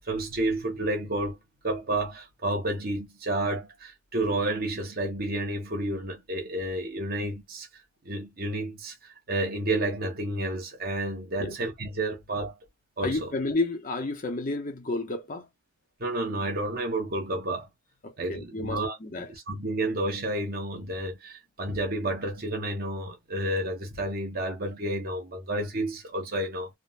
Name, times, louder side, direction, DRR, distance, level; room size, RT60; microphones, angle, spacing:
voice 1, 0.1-1.4 1.6-7.7 8.0-12.6 13.0-13.3 16.0-17.7 18.2-26.7, right 1 dB, 45° right, 1.1 m, -30 dB
voice 2, 13.0-15.5 18.0-19.3, left 2 dB, 40° left, 0.8 m, -31 dB
3.6 x 2.2 x 2.5 m
head